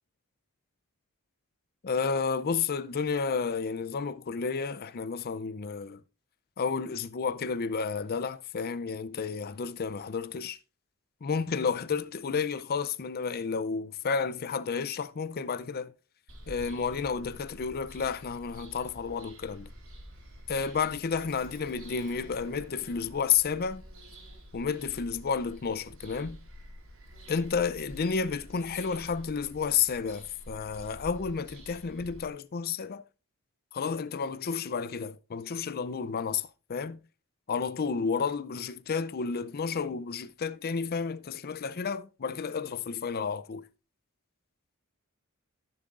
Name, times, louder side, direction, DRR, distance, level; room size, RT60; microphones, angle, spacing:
voice 1, 1.8-6.0 6.6-10.6 11.2-15.9 16.5-19.7 20.5-23.8 24.5-26.4 27.3-33.0 33.7-37.0 37.5-43.6, left 5 dB, 45° left, 0.5 m, -31 dB
Bird vocalization bird call bird song, 16.3-32.3, equal, 70° right, 3.3 m, -48 dB
14.5 x 6.8 x 2.5 m
head